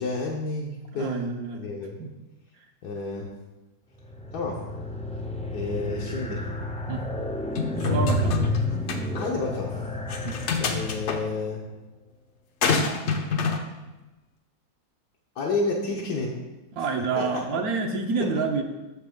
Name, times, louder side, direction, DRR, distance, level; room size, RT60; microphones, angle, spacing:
voice 1, 0.0-2.0 2.8-3.3 4.3-4.6 5.5-6.4 9.1-9.8 10.6-11.6 15.4-16.4 17.2-17.3, left 3 dB, 75° left, -2 dB, 1.4 m, -30 dB
voice 2, 0.9-1.6 2.0-2.1 6.9-7.0 7.8-8.4 10.2-10.4 16.7-18.6, right 4 dB, 70° right, 4 dB, 1.2 m, -28 dB
sound 1, 4.0-11.4, left 1 dB, 10° left, 0.3 m, -30 dB
sound 2, 7.6-8.6 8.9-9.0 10.1-11.2 12.6-13.6, left 5 dB, 60° left, 0.8 m, -26 dB
6.7 x 6.5 x 3.5 m, 1.1 s
omnidirectional pair, 1.7 m